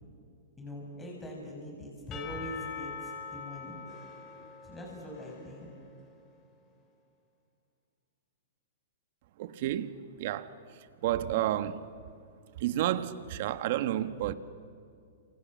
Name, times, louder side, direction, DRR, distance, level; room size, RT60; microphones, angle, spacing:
voice 1, 0.6-3.8 4.7-5.7, left 1 dB, 15° left, 6.5 m, -42 dB
Percussion / Church bell, 2.1-6.2, left 6 dB, 30° left, 3.5 m, -44 dB
voice 2, 9.4-10.5 11.0-11.8 12.6-14.3, right 13 dB, 55° right, 1.4 m, -30 dB
28.5 x 26.5 x 7.5 m
hypercardioid pair, 130°, 0 cm